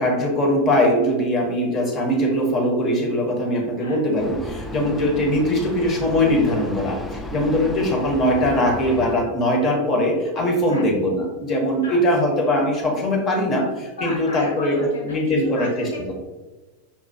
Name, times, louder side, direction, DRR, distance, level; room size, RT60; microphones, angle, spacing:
voice 1, 0.0-15.9, left 1 dB, 30° left, 0 dB, 1.1 m, -21 dB
Vehicle, 4.2-9.2, left 2 dB, 10° left, 0.4 m, -33 dB
voice 2, 14.0-16.1, left 1 dB, 65° left, -3 dB, 1.4 m, -34 dB
5.6 x 2.7 x 2.7 m, 1.1 s
figure-of-eight pair, 90°, 0 cm